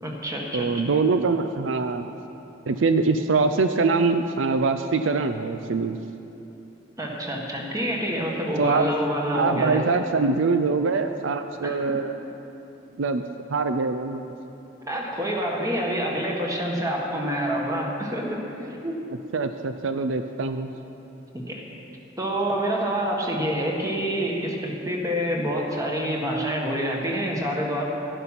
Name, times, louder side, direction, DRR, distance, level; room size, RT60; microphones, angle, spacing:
voice 1, 0.0-0.7 7.0-9.8 11.6-11.9 14.9-19.0 21.3-21.6 22.2-27.8, equal, 20° right, -1 dB, 1.7 m, -27 dB
voice 2, 0.5-2.1 2.7-6.0 8.3-8.9 9.3-12.1 13.0-13.2 13.5-14.3 19.3-20.7, right 4 dB, 75° right, 8 dB, 0.5 m, -23 dB
12.0 x 11.0 x 5.9 m, 3.0 s
head